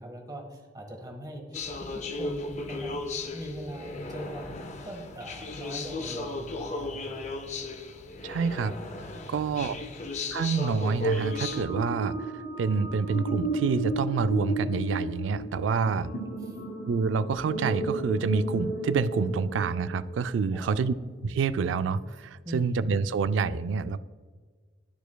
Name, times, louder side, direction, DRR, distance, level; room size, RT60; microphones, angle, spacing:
voice 1, 0.0-3.0 3.3-7.2 15.8-16.6 20.5-20.8 22.4-22.9, equal, 20° right, 2 dB, 1.2 m, -41 dB
sound 1, 1.5-11.6, left 2 dB, 40° left, 0.5 m, -35 dB
voice 2, 8.2-8.7 9.3-9.7 10.3-16.1 16.8-20.9 21.2-24.0, right 5 dB, 90° right, 14 dB, 0.3 m, -27 dB
sound 2, 11.0-20.4, right 2 dB, 65° left, 1.7 m, -34 dB
12.0 x 4.6 x 2.2 m, 1.5 s
head